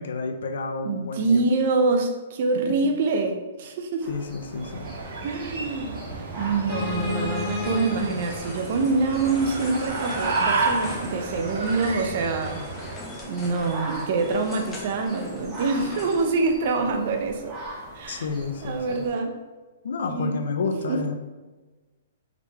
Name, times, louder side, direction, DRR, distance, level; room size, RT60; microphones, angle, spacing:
voice 1, 0.0-1.4 4.1-4.9 18.1-19.0 19.8-21.2, left 4 dB, 75° left, 6 dB, 0.6 m, -30 dB
voice 2, 0.8-4.1 5.2-5.9 6.4-12.6 13.2-17.6 17.9-18.3 18.6-19.3 20.1-20.3 20.9-21.2, right 3 dB, 55° right, 5 dB, 0.6 m, -25 dB
sound 1, 4.0-19.1, right 2 dB, 20° right, 1.4 m, -42 dB
sound 2, 4.5-13.1, right 3 dB, 70° right, 1.0 m, -31 dB
sound 3, 6.7-16.3, left 3 dB, 15° left, 1.0 m, -36 dB
5.0 x 3.3 x 3.2 m, 1.3 s
hypercardioid pair, 140°, 0 cm